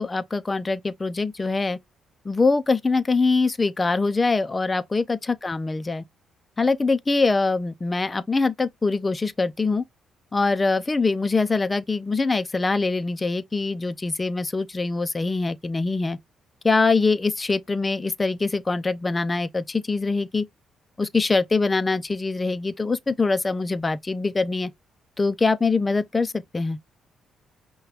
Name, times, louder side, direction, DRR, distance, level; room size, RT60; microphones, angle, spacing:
voice 1, 0.0-1.8 2.3-6.0 6.6-9.8 10.3-16.2 16.6-20.5 21.0-24.7 25.2-26.8, left 3 dB, 25° left, 0.5 m, -23 dB
5.6 x 2.3 x 3.5 m
cardioid pair, 90°, 0 cm